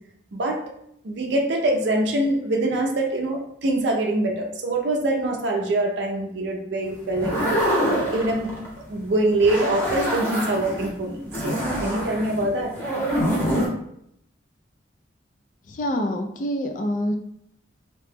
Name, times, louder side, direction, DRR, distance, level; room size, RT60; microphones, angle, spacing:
voice 1, 1.0-7.6 8.1-8.5 8.9-12.7, right 1 dB, 65° right, 1 dB, 0.5 m, -24 dB
sound 1, 7.1-8.8 9.3-10.9 11.3-13.7, equal, 15° left, 0.8 m, -25 dB
voice 2, 15.7-17.1, equal, 45° left, 5 dB, 0.3 m, -26 dB
2.8 x 2.1 x 3.3 m, 0.73 s
head